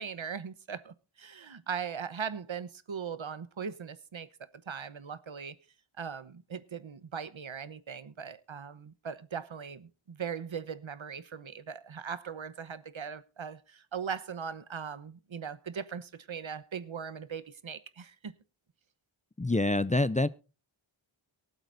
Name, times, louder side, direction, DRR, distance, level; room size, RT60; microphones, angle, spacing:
voice 1, 0.0-4.3 4.7-5.6 6.0-18.3, right 7 dB, 75° right, 1.1 m, -39 dB
voice 2, 19.4-20.3, left 2 dB, 15° left, 0.5 m, -26 dB
23.5 x 8.1 x 2.6 m
wide cardioid pair, 65°, 48 cm